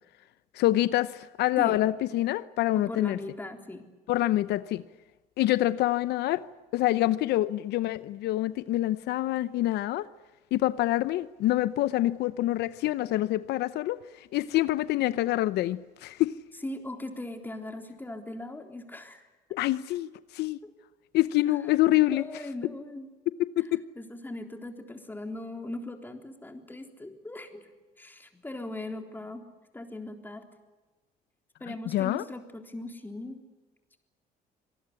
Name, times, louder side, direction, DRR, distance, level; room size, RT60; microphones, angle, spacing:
voice 1, 0.5-3.2 4.1-4.8 5.4-6.5 6.7-10.1 10.5-16.4 19.5-20.6 21.1-22.2 23.4-23.8 31.7-32.2, left 15 dB, 80° left, 15 dB, 0.8 m, -26 dB
voice 2, 2.7-3.9 16.6-19.3 20.6-20.7 22.1-23.1 24.0-27.7 28.0-29.4 29.7-30.5 31.6-33.4, left 2 dB, 10° left, 5 dB, 3.7 m, -39 dB
26.0 x 19.5 x 9.8 m, 1.2 s
cardioid pair, 110°, 17 cm